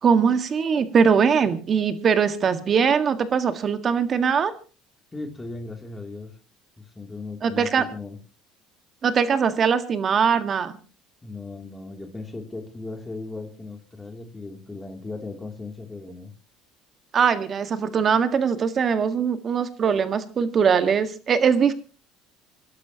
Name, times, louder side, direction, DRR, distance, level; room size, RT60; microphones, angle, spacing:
voice 1, 0.0-4.5 7.4-7.8 9.0-10.7 17.1-21.7, right 6 dB, 35° right, 9 dB, 1.7 m, -21 dB
voice 2, 5.1-6.4 6.8-8.2 11.2-16.3, left 3 dB, 15° left, 4 dB, 2.9 m, -37 dB
28.0 x 12.0 x 3.0 m, 0.36 s
cardioid pair, 120°, 0 cm